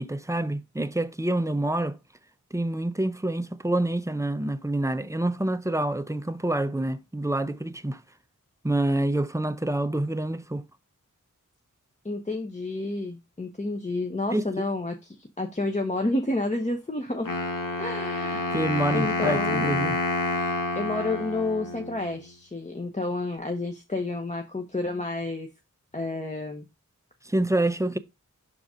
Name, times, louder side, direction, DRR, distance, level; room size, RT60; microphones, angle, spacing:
voice 1, 0.0-2.0 2.5-8.0 8.6-10.6 14.3-14.5 18.5-20.0 27.2-28.0, right 1 dB, 10° right, 0.5 m, -27 dB
voice 2, 12.0-17.3 17.8-18.6 18.9-19.7 20.8-25.5 25.9-26.7, left 2 dB, 20° left, 0.9 m, -30 dB
Wind instrument woodwind instrument, 17.2-22.2, left 2 dB, 85° left, 1.0 m, -28 dB
6.1 x 4.0 x 4.9 m
wide cardioid pair, 75°, 32 cm